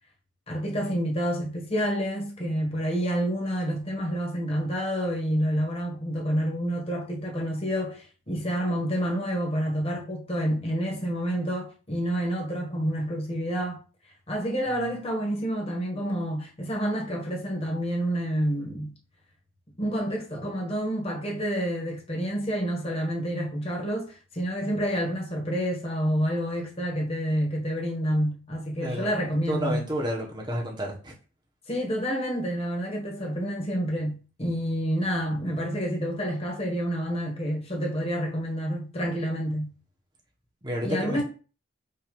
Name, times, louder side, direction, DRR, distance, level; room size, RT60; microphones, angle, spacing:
voice 1, 0.5-13.8 14.3-18.9 19.8-29.8 31.7-39.7 40.8-41.2, equal, 30° left, 1.8 m, -28 dB
voice 2, 29.5-31.1 40.6-41.2, equal, 25° right, 1.6 m, -30 dB
5.9 x 3.1 x 5.5 m
head